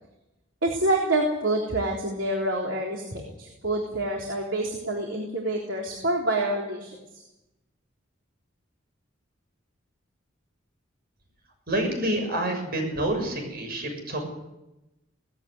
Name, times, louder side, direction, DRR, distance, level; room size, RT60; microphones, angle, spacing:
voice 1, 0.6-7.2, right 1 dB, 70° right, 0 dB, 3.7 m, -27 dB
voice 2, 11.7-14.2, right 1 dB, 55° right, 4 dB, 6.7 m, -28 dB
19.0 x 16.0 x 9.7 m, 0.96 s
head